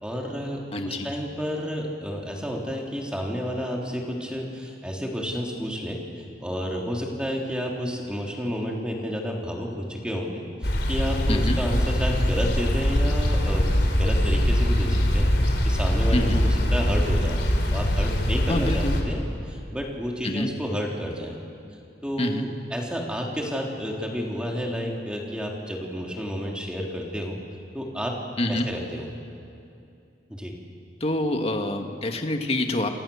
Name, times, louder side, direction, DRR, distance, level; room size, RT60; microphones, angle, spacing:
voice 1, 0.0-17.4 17.7-19.2 19.5-21.4 22.0-27.4 27.7-28.2 28.5-29.1 30.3-30.5, equal, 5° right, -1 dB, 3.5 m, -31 dB
voice 2, 0.7-1.1 11.3-11.6 16.1-16.4 18.5-19.0 20.2-20.5 22.2-22.5 28.4-28.7 31.0-32.9, left 1 dB, 35° left, 5 dB, 2.0 m, -26 dB
sound 1, 10.6-19.0, equal, 75° left, 3.9 m, -22 dB
29.0 x 28.0 x 7.2 m, 2.5 s
head